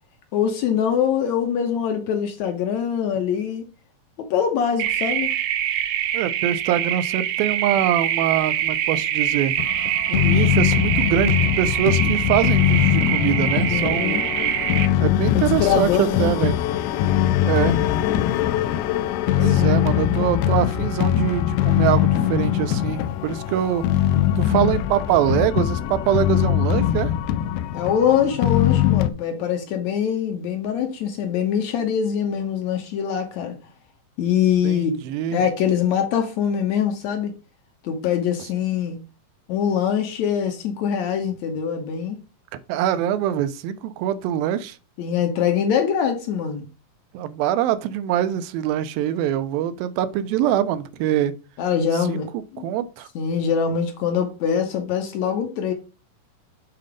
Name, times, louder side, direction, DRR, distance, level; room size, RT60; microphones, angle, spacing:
voice 1, 0.3-3.6 4.2-5.3 13.7-14.2 15.3-16.3 19.4-19.8 27.7-33.6 34.2-34.9 35.3-37.3 37.8-39.0 39.5-42.2 45.0-46.7 51.6-52.7 53.2-55.7, left 8 dB, 65° left, 1.9 m, -23 dB
sound 1, 4.8-14.9, right 11 dB, 75° right, 1.8 m, -24 dB
voice 2, 6.1-9.5 10.1-14.2 15.0-16.6 17.4-17.8 19.3-23.9 24.4-27.1 34.6-35.4 42.7-44.8 47.1-51.3 52.1-53.1, right 11 dB, 90° right, 2.5 m, -24 dB
sound 2, 9.6-29.1, left 12 dB, 85° left, 2.3 m, -21 dB
7.7 x 3.8 x 5.0 m
omnidirectional pair, 4.1 m